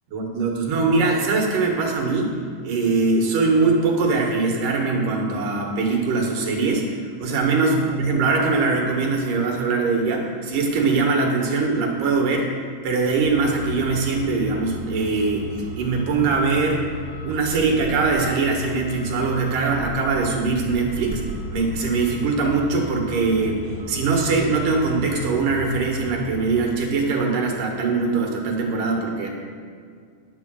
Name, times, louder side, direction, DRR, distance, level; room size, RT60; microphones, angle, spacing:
voice 1, 0.1-2.3 2.6-6.9 7.2-12.5 12.8-15.5 15.8-16.8 17.2-21.2 21.5-29.3, right 4 dB, 75° right, 1 dB, 3.2 m, -22 dB
Truck, 13.2-26.6, equal, 35° right, 1.8 m, -35 dB
10.5 x 7.3 x 7.6 m, 2.1 s
omnidirectional pair, 3.8 m